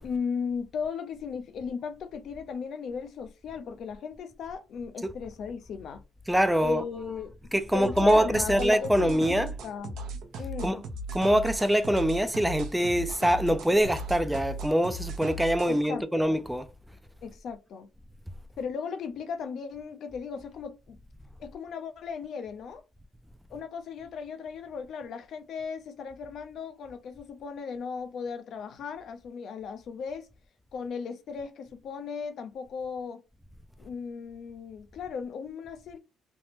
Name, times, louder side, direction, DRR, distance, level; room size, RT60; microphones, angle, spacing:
voice 1, 0.0-6.0 6.6-7.4 7.7-10.8 15.7-16.3 17.2-17.9 18.6-21.0 21.4-22.8 23.5-30.3 30.7-33.2 33.8-36.0, left 6 dB, 65° left, 0.5 m, -36 dB
voice 2, 6.3-6.8 7.5-9.5 10.6-10.8 11.1-16.7, equal, 5° right, 0.3 m, -24 dB
sound 1, 7.8-15.8, right 2 dB, 85° right, 0.7 m, -37 dB
3.3 x 2.1 x 2.8 m
cardioid pair, 110°, 0 cm